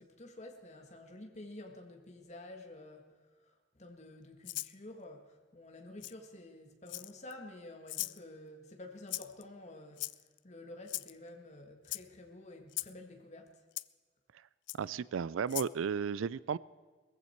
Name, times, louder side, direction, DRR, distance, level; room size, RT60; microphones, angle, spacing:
voice 1, 0.0-3.0 3.5-10.1 10.4-13.6, left 1 dB, 35° left, 4 dB, 1.7 m, -50 dB
Rattle (instrument), 4.4-4.7 6.0-6.1 6.9-7.3 7.9-8.2 9.1-9.4 10.0-10.4 10.9-11.1 11.8-12.0 12.7-12.9 13.8-13.9 14.7-14.8 15.5-15.7, left 19 dB, 65° left, 0.4 m, -39 dB
voice 2, 14.8-16.6, right 6 dB, 85° right, 20 dB, 0.4 m, -34 dB
20.0 x 15.0 x 4.5 m, 1.4 s
head